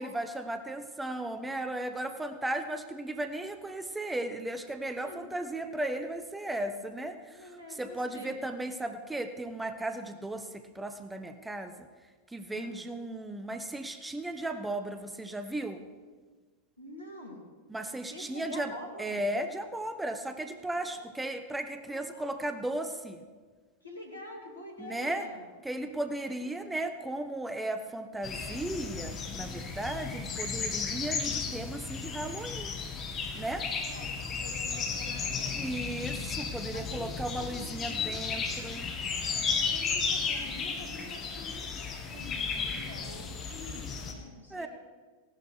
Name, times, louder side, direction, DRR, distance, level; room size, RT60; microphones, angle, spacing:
voice 1, 0.0-11.7 12.3-15.8 17.7-18.7 19.0-23.2 24.8-25.2 25.6-32.7 33.3-33.7 35.6-38.9 44.5-44.7, right 1 dB, 5° right, 8 dB, 0.8 m, -36 dB
voice 2, 7.2-8.5 12.5-12.8 16.8-17.5 18.1-19.3 20.8-20.9 21.8-22.5 23.8-25.5 26.3-26.7 33.6-35.8 36.7-38.2 39.1-41.7 42.1-44.7, left 1 dB, 80° left, 1 dB, 2.6 m, -47 dB
sound 1, 28.2-44.1, left 5 dB, 25° left, 1.9 m, -34 dB
16.5 x 12.0 x 4.8 m, 1.4 s
figure-of-eight pair, 90°, 0 cm